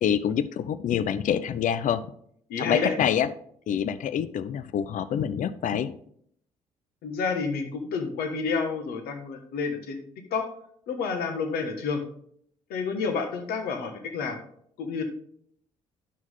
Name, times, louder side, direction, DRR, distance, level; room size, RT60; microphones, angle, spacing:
voice 1, 0.0-2.1 2.6-3.3 3.7-5.9, left 9 dB, 50° left, 14 dB, 0.5 m, -26 dB
voice 2, 2.5-2.9 7.0-10.0 10.3-10.5 10.9-12.0 12.7-14.4 14.8-15.0, left 5 dB, 65° left, 5 dB, 1.4 m, -29 dB
10.0 x 6.2 x 3.7 m, 0.65 s
hypercardioid pair, 45°, 17 cm